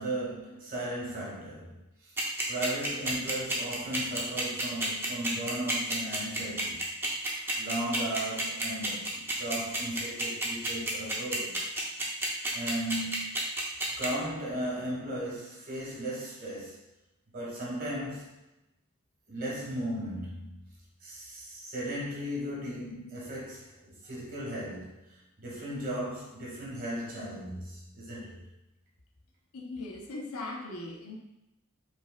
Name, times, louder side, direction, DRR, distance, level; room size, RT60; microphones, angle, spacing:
voice 1, 0.0-2.2 2.5-11.6 12.5-13.4 14.0-16.8 17.3-18.3 19.3-20.6 21.0-28.5, right 1 dB, 45° right, -5 dB, 1.7 m, -36 dB
sound 1, 2.2-14.1, right 1 dB, 10° right, 0.7 m, -30 dB
voice 2, 29.5-31.2, left 2 dB, 85° left, 1 dB, 0.8 m, -39 dB
5.2 x 4.6 x 2.2 m, 0.89 s
head